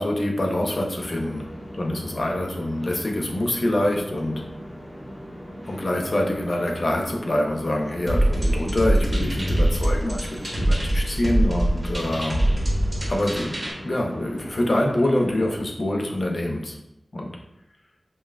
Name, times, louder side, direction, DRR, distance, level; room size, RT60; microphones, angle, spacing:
voice 1, 0.0-1.5 1.8-4.4 5.7-12.5 13.1-13.5 13.8-16.7 17.1-17.3, left 1 dB, 50° left, 1 dB, 0.6 m, -25 dB
sound 1, 1.0-15.6, equal, 20° left, 1.2 m, -40 dB
sound 2, 8.1-13.7, right 1 dB, 30° right, 0.9 m, -23 dB
5.2 x 2.2 x 2.4 m, 0.83 s
wide cardioid pair, 85°, 0 cm